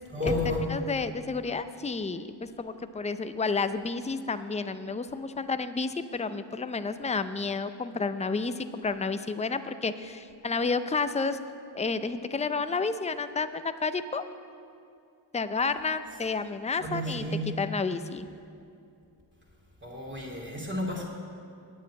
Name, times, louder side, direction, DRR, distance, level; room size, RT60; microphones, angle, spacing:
voice 1, 0.1-0.6 16.8-17.6 19.8-21.1, left 1 dB, 25° right, -2 dB, 2.6 m, -31 dB
voice 2, 0.7-11.4 11.7-14.2 15.3-17.2 17.6-18.3, left 4 dB, 15° left, 11 dB, 0.5 m, -31 dB
9.2 x 7.5 x 8.7 m, 2.5 s
cardioid pair, 45°, 45 cm